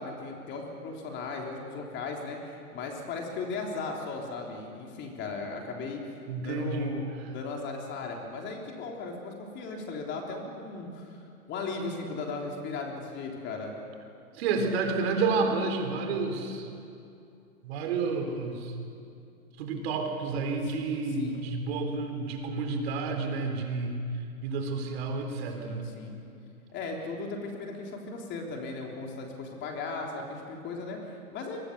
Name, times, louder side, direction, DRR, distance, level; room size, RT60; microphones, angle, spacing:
voice 1, 0.0-6.0 6.4-7.0 7.3-11.2 11.5-13.7 20.7-21.5 25.6-26.2 26.7-31.6, left 3 dB, 25° left, 1 dB, 3.6 m, -37 dB
voice 2, 6.3-7.0 14.4-16.7 17.6-18.7 19.6-24.0 24.4-25.8, right 4 dB, 45° right, 4 dB, 3.9 m, -30 dB
29.0 x 23.5 x 6.9 m, 2.5 s
figure-of-eight pair, 125°, 44 cm